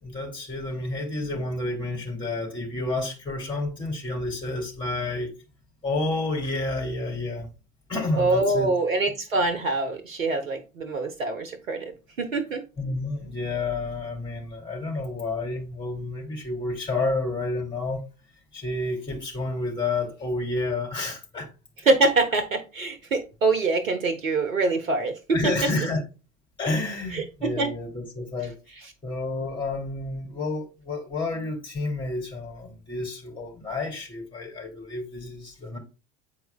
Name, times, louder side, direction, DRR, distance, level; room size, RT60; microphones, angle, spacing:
voice 1, 0.0-5.3 5.8-7.5 7.9-8.7 12.8-18.0 18.5-21.5 25.3-26.0 26.6-28.5 29.0-35.8, left 2 dB, 10° left, 2.8 m, -30 dB
voice 2, 8.2-12.6 21.8-25.5 27.1-27.7, right 3 dB, 80° right, 1.1 m, -24 dB
9.4 x 4.5 x 2.2 m
figure-of-eight pair, 70°, 40 cm